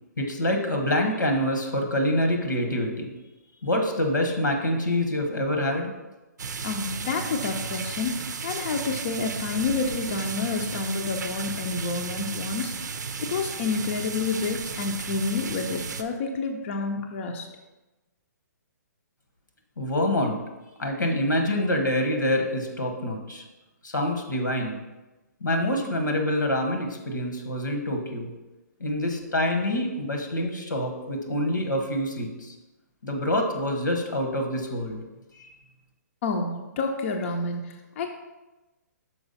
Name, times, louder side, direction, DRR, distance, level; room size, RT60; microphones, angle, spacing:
voice 1, 0.2-3.1 3.6-5.9 19.8-20.4 20.8-23.4 23.8-24.8 25.4-28.3 28.8-32.5 33.0-35.0 35.3-35.5, left 1 dB, 90° left, 3 dB, 1.4 m, -26 dB
sound 1, 6.4-16.0, right 5 dB, 75° right, 0.5 m, -34 dB
voice 2, 6.6-12.9 13.2-17.5 36.2-38.1, left 4 dB, 45° left, 3 dB, 0.6 m, -29 dB
5.9 x 4.8 x 4.1 m, 1.1 s
hypercardioid pair, 140°, 10 cm